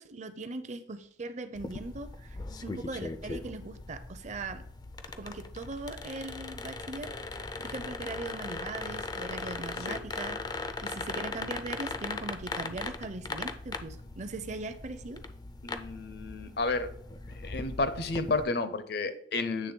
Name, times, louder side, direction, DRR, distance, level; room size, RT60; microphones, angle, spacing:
voice 1, 0.0-4.6 5.2-15.2, right 3 dB, 40° right, 10 dB, 0.5 m, -40 dB
sound 1, 1.5-18.4, left 3 dB, 20° left, 0.4 m, -39 dB
voice 2, 15.6-16.9 17.3-19.7, left 3 dB, 60° left, 11 dB, 0.6 m, -31 dB
8.4 x 3.3 x 4.4 m, 0.68 s
head